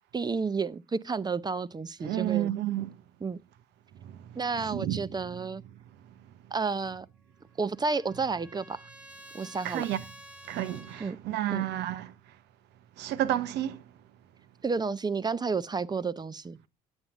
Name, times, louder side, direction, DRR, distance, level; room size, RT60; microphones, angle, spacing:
voice 1, 0.1-2.5 3.2-3.4 4.4-5.6 6.5-7.1 7.6-8.8 9.3-9.8 11.0-11.2 11.5-11.6 14.6-16.6, right 4 dB, 20° right, 0.6 m, -31 dB
voice 2, 2.0-2.9 4.0-4.1 4.5-5.4 9.6-10.0 10.5-12.1 13.0-13.8, right 13 dB, 65° right, 0.8 m, -31 dB
Trumpet, 7.3-11.1, right 1 dB, 5° right, 1.2 m, -51 dB
8.8 x 8.1 x 4.0 m
hypercardioid pair, 55°, 19 cm